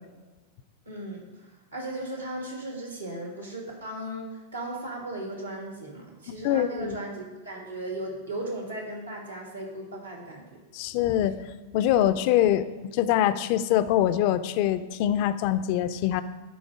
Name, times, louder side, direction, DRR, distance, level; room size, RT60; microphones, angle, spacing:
voice 1, 0.9-10.6, right 1 dB, 85° right, 0 dB, 1.7 m, -36 dB
voice 2, 6.4-7.0 10.7-11.4 11.7-12.7 12.9-16.2, left 11 dB, 45° left, 13 dB, 0.4 m, -24 dB
10.0 x 3.9 x 4.8 m, 1.2 s
figure-of-eight pair, 90°, 0 cm